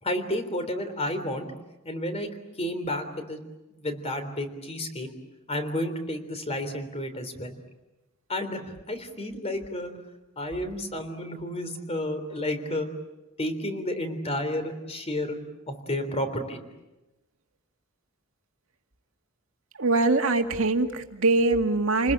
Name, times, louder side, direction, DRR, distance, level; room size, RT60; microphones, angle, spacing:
voice 1, 0.0-1.5 1.9-2.3 2.6-3.4 3.7-5.1 5.5-7.6 8.3-9.9 10.4-12.9 13.4-15.4 15.7-16.6, left 1 dB, 30° left, 8 dB, 3.5 m, -31 dB
voice 2, 19.8-22.1, right 3 dB, 80° right, 5 dB, 2.0 m, -23 dB
30.0 x 20.5 x 8.8 m, 1.0 s
head